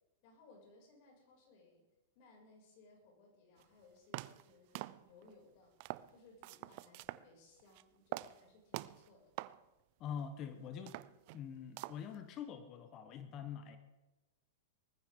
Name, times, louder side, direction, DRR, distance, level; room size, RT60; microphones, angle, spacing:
voice 1, 0.2-1.8 2.1-9.3, left 3 dB, 50° left, 0 dB, 6.4 m, -63 dB
sound 1, 3.6-3.7 4.1-4.5 4.8-5.3 5.8-6.1 6.4-7.3 7.6-7.8 8.1-8.4 8.7-9.1 9.4-9.6 10.1-10.2 10.7-11.5 11.8-12.2, right 19 dB, 50° right, 0.5 m, -45 dB
voice 2, 10.0-11.0 11.3-13.8, left 7 dB, 35° left, 9 dB, 1.2 m, -45 dB
19.5 x 14.0 x 3.8 m, 1.1 s
hypercardioid pair, 130°, 0 cm